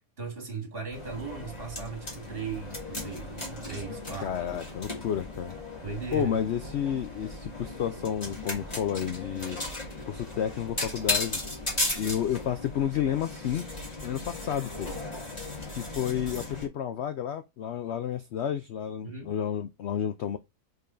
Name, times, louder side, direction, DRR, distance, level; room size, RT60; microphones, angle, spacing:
voice 1, 0.2-4.3 5.8-6.4 19.0-19.3, right 5 dB, 35° right, 2.0 m, -37 dB
sound 1, 0.9-16.7, left 2 dB, 25° left, 2.3 m, -36 dB
voice 2, 4.2-5.5 6.1-9.6 10.0-13.7 14.0-14.9 15.7-20.4, left 9 dB, 70° left, 0.6 m, -31 dB
5.4 x 3.9 x 5.0 m
omnidirectional pair, 1.7 m